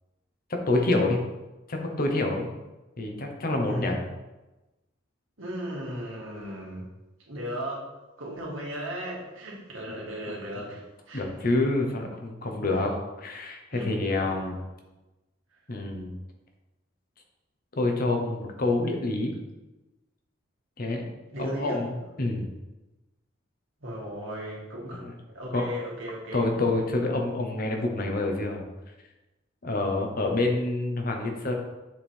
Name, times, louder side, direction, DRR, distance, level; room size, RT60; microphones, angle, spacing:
voice 1, 0.7-1.2 1.7-2.5 3.0-4.0 11.1-14.6 15.7-16.2 17.8-19.3 20.8-21.0 21.4-22.5 25.0-25.1 25.5-25.6 26.3-28.6 29.6-31.5, left 2 dB, 45° left, 2 dB, 0.9 m, -27 dB
voice 2, 3.7-4.0 5.4-6.9 7.3-7.9 8.2-11.5 12.6-12.7 13.7-14.5 21.3-21.8 23.8-26.5, equal, 80° right, -4 dB, 2.0 m, -36 dB
7.3 x 3.6 x 4.4 m, 1.1 s
head